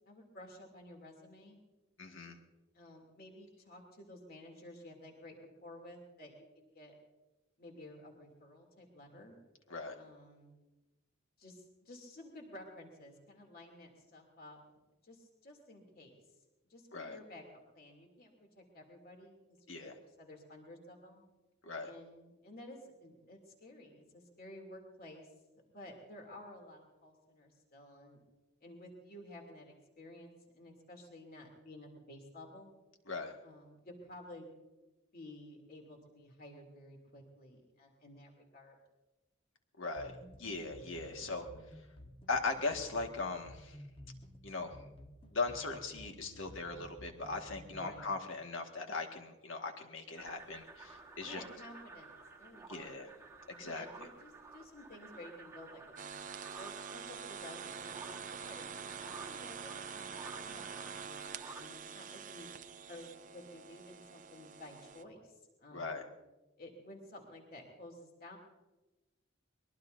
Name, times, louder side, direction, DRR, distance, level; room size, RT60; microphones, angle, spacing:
voice 1, 0.1-1.6 2.7-7.0 7.6-9.4 9.9-10.6 11.4-14.6 15.0-16.2 16.7-21.2 21.8-25.3 25.7-28.2 28.6-32.7 33.4-34.6 35.1-38.8 47.7-48.2 51.2-53.1 53.6-60.7 61.0-62.5 62.9-65.3 65.6-66.0 66.6-68.4, left 1 dB, 45° left, 1 dB, 3.0 m, -53 dB
voice 2, 2.0-2.4 9.7-10.0 16.9-17.2 19.7-19.9 21.6-21.9 33.1-33.3 39.8-40.1 40.4-41.5 42.3-43.8 44.4-44.8 45.3-51.4 52.7-53.1 53.5-53.9 65.7-66.0, left 3 dB, 65° left, 4 dB, 1.9 m, -39 dB
sound 1, 40.0-48.0, equal, 25° left, 1.3 m, -54 dB
sound 2, 50.2-61.7, right 3 dB, 15° right, 1.3 m, -53 dB
sound 3, 56.0-65.0, right 6 dB, 40° right, 0.6 m, -46 dB
23.5 x 21.5 x 2.7 m, 1.1 s
head